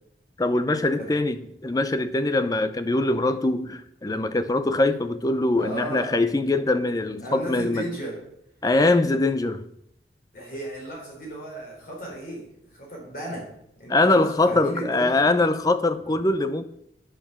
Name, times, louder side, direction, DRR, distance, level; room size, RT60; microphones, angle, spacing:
voice 1, 0.4-7.9 8.6-9.6 13.9-16.6, left 2 dB, 20° left, 0.5 m, -22 dB
voice 2, 5.6-6.1 7.2-8.1 10.3-12.5 12.8-13.4 13.8-15.1, right 1 dB, 50° left, 3.9 m, -34 dB
9.0 x 6.4 x 5.9 m
head